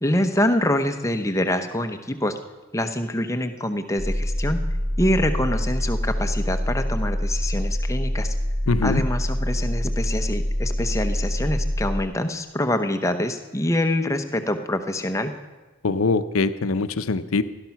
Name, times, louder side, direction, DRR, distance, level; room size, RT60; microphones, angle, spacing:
voice 1, 0.0-2.3 2.7-4.6 5.0-8.3 8.8-15.3, left 1 dB, 15° left, 6 dB, 0.8 m, -25 dB
sound 1, 4.0-12.0, equal, 15° right, 3.5 m, -25 dB
voice 2, 8.7-9.0 15.8-17.4, left 3 dB, 80° left, 11 dB, 0.7 m, -22 dB
16.5 x 12.0 x 5.9 m, 1.2 s
head